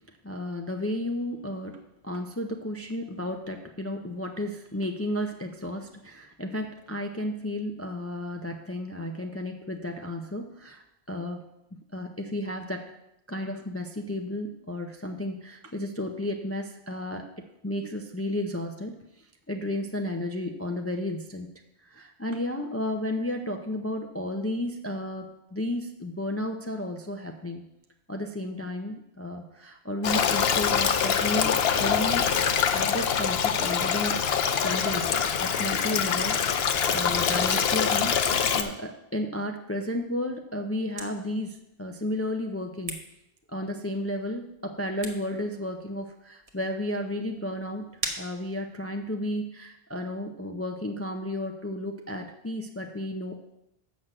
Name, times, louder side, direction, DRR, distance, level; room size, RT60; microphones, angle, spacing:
voice 1, 0.2-1.8 2.0-11.4 11.9-12.9 13.3-17.3 17.6-21.5 21.8-27.7 28.1-31.5 31.8-32.3 32.7-34.2 34.6-36.4 36.9-43.0 43.5-47.9 48.2-53.4, left 1 dB, 20° left, 4 dB, 0.5 m, -33 dB
Stream, 30.0-38.6, left 7 dB, 75° left, 0.9 m, -24 dB
sound 1, 40.5-49.2, right 2 dB, 35° right, 1.2 m, -43 dB
7.5 x 6.1 x 6.5 m, 0.85 s
omnidirectional pair, 1.0 m